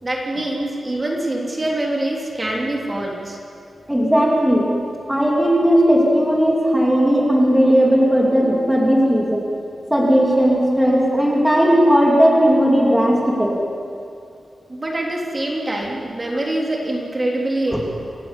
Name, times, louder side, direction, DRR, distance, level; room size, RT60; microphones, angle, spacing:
voice 1, 0.0-3.4 14.7-17.8, right 1 dB, 25° right, -2 dB, 3.4 m, -24 dB
voice 2, 3.9-4.7 5.1-9.4 9.9-13.6 17.7-17.8, equal, 5° right, -3 dB, 3.1 m, -16 dB
28.0 x 14.5 x 8.4 m, 2.5 s
wide cardioid pair, 155°, 0 cm